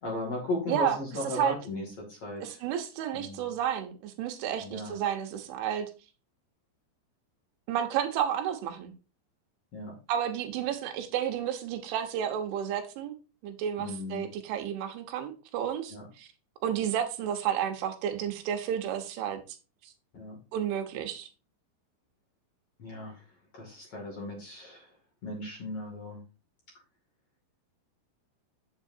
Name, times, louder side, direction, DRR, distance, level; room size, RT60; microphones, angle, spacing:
voice 1, 0.0-2.6 3.1-3.5 4.6-5.0 9.7-9.9 13.8-14.3 15.9-16.1 20.1-20.4 22.8-23.2 23.5-24.9 25.2-26.2, left 1 dB, 40° left, 2.7 m, -36 dB
voice 2, 2.4-5.9 7.7-8.9 10.1-13.2 13.4-16.3 16.6-19.4 19.8-19.9 20.5-21.3, right 9 dB, 85° right, 3.6 m, -31 dB
8.9 x 8.0 x 2.7 m
omnidirectional pair, 5.4 m